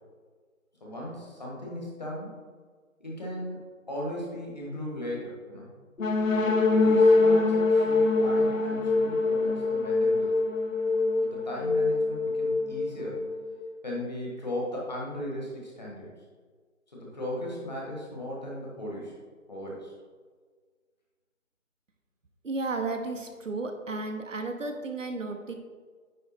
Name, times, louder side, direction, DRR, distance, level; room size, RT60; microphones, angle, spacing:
voice 1, 0.8-2.4 3.0-5.7 6.3-10.4 11.2-13.2 13.8-16.1 16.9-19.1 19.5-19.9, left 1 dB, 30° left, -3 dB, 1.4 m, -37 dB
sound 1, 6.0-13.7, left 3 dB, 70° left, 0.9 m, -24 dB
voice 2, 22.4-25.5, right 3 dB, 65° right, 5 dB, 1.0 m, -33 dB
9.4 x 3.2 x 4.2 m, 1.5 s
figure-of-eight pair, 170°, 40 cm